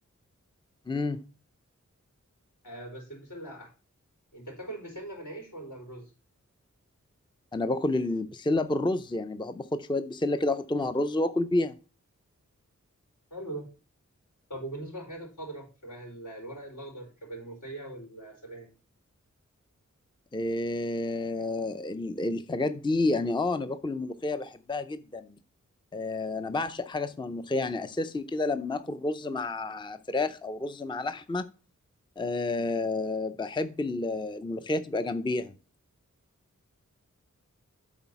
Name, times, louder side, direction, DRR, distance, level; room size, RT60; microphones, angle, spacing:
voice 1, 0.9-1.2 7.5-11.7 20.3-25.3 25.9-31.4 32.2-35.6, left 2 dB, 15° left, 0.5 m, -30 dB
voice 2, 2.6-3.7 4.3-6.1 13.3-13.7 14.5-18.7, right 1 dB, 75° left, 4.6 m, -41 dB
8.1 x 4.1 x 5.7 m
wide cardioid pair, 65°, 30 cm